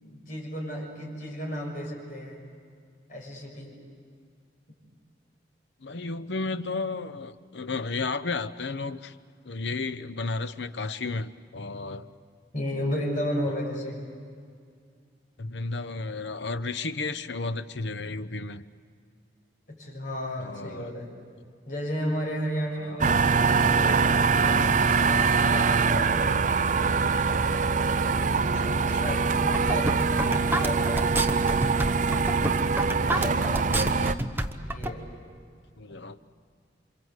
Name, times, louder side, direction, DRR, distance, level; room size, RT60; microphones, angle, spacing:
voice 1, 0.0-2.4 3.1-3.7 12.5-14.0 19.7-21.1 21.7-26.8 28.2-31.6 34.5-35.1 35.9-36.0, equal, 50° left, -1 dB, 7.1 m, -34 dB
voice 2, 5.8-9.1 9.4-12.1 13.5-13.6 15.4-18.6 20.4-20.9 22.8-23.0 28.5-29.1 33.0-33.6 35.8-36.2, left 3 dB, 75° left, 12 dB, 0.9 m, -33 dB
sound 1, 23.0-34.1, right 4 dB, 45° right, 0.6 m, -23 dB
sound 2, 29.3-34.9, right 1 dB, 10° right, 1.1 m, -29 dB
28.0 x 25.5 x 8.2 m, 2.2 s
head